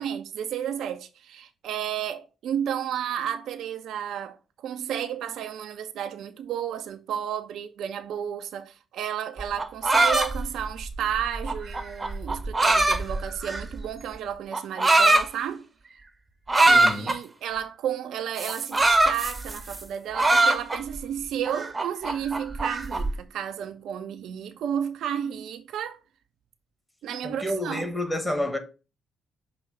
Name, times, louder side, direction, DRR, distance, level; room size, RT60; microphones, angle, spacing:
voice 1, 0.0-15.6 16.6-26.0 27.0-27.9, right 9 dB, 60° right, 0.5 m, -32 dB
sound 1, 9.4-13.8 14.5-15.3 16.5-17.2 18.4-19.8 20.1-21.0 21.5-23.1, right 2 dB, 25° right, 0.8 m, -22 dB
voice 2, 16.6-17.1 27.2-28.6, left 1 dB, 15° left, 1.5 m, -29 dB
5.9 x 2.9 x 5.6 m
figure-of-eight pair, 40°, 0 cm